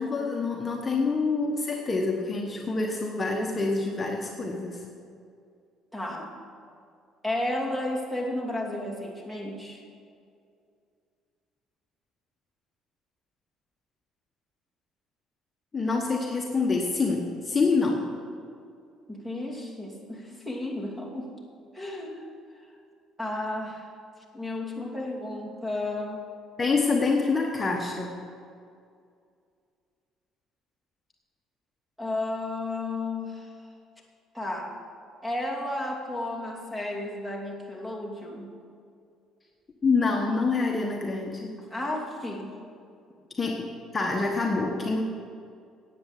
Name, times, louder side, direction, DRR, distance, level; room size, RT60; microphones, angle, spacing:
voice 1, 0.0-4.8 15.7-18.1 26.6-28.1 39.8-41.5 43.4-45.0, left 3 dB, 25° left, 1 dB, 1.2 m, -26 dB
voice 2, 5.9-6.4 7.2-9.8 19.1-21.3 21.7-22.3 23.2-23.9 24.3-26.2 32.0-33.5 34.3-34.7 35.2-38.6 41.7-42.5, left 1 dB, 10° right, -1 dB, 2.7 m, -33 dB
10.0 x 8.5 x 7.3 m, 2.4 s
supercardioid pair, 80°, 0 cm